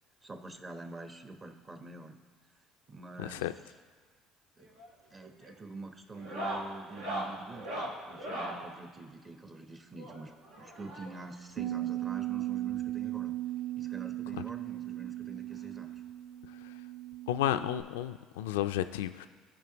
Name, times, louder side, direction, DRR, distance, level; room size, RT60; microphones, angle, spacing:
voice 1, 0.2-2.2 2.9-3.7 4.6-4.7 5.1-10.3 10.6-13.3 13.8-15.9, right 2 dB, 30° right, 6 dB, 1.0 m, -46 dB
sound 1, 4.6-4.9 5.2-5.6 6.1-8.7 10.0-11.4 12.4-12.5 12.7-12.8 13.3-13.4 14.7-14.8 16.1-16.2, right 1 dB, 85° right, 1.5 m, -39 dB
Bass guitar, 11.6-17.8, right 15 dB, 55° right, 1.0 m, -37 dB
voice 2, 17.3-19.3, left 12 dB, 85° left, 11 dB, 0.3 m, -31 dB
15.5 x 5.2 x 2.9 m, 1.5 s
hypercardioid pair, 70°, 0 cm